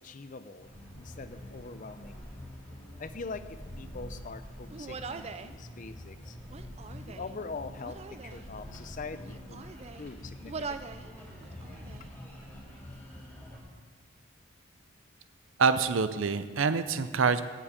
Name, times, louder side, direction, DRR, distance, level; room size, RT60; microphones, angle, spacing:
voice 1, 0.0-2.3 3.0-6.4 7.1-9.6 10.0-11.0, left 4 dB, 40° left, 12 dB, 0.5 m, -43 dB
sound 1, 0.6-13.6, equal, 10° left, 2.4 m, -46 dB
Human voice, 4.7-5.5 6.4-7.4 7.8-8.5 9.1-10.1 10.5-11.1 11.4-12.1, right 4 dB, 30° right, 0.4 m, -42 dB
voice 2, 15.6-17.4, right 5 dB, 75° right, 12 dB, 0.6 m, -26 dB
8.5 x 7.6 x 8.4 m, 1.5 s
head